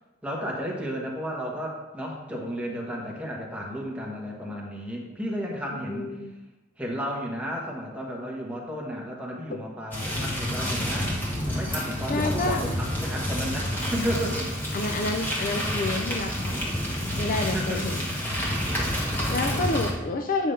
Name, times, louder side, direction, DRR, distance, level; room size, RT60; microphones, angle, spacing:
voice 1, 0.2-6.2 6.8-11.1 11.5-14.5 17.5-18.0 18.8-19.7, equal, 5° right, -2 dB, 1.3 m, -33 dB
voice 2, 5.7-6.3 12.1-12.6 14.0-14.1 14.7-16.5 17.2-18.0 19.3-20.5, left 2 dB, 45° left, 4 dB, 0.5 m, -29 dB
sound 1, 9.9-19.9, equal, 10° left, 1.5 m, -29 dB
8.4 x 3.5 x 5.5 m, 1.0 s
head